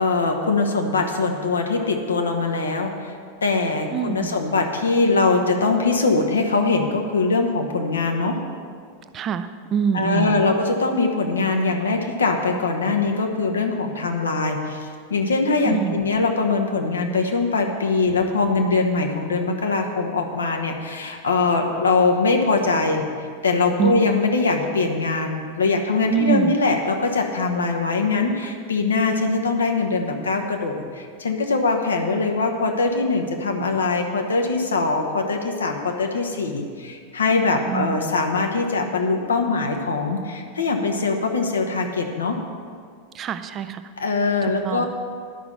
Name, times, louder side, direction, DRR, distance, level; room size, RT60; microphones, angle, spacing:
voice 1, 0.0-3.1 3.4-8.4 9.9-23.0 23.4-42.4 44.0-44.8, left 3 dB, 70° left, 3 dB, 1.2 m, -22 dB
voice 2, 3.9-4.4 9.1-10.4 15.7-16.0 23.8-23.9 26.1-26.5 37.7-38.0 43.1-43.8 44.4-44.8, right 7 dB, 30° right, 11 dB, 0.6 m, -25 dB
11.0 x 6.0 x 8.2 m, 2.1 s
figure-of-eight pair, 90°, 0 cm